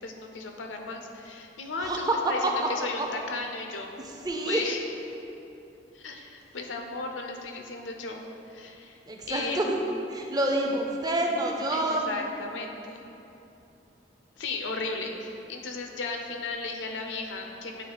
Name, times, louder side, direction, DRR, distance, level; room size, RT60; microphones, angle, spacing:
voice 1, 0.0-3.9 4.5-4.8 5.9-9.0 9.3-9.9 11.7-13.0 14.4-17.8, left 3 dB, 85° left, 3 dB, 0.6 m, -35 dB
voice 2, 1.8-2.2 2.4-2.5 3.0-3.1 4.0-4.6 9.1-9.8 10.1-12.2, right 1 dB, 20° right, 1 dB, 0.5 m, -28 dB
8.9 x 3.1 x 3.9 m, 2.8 s
head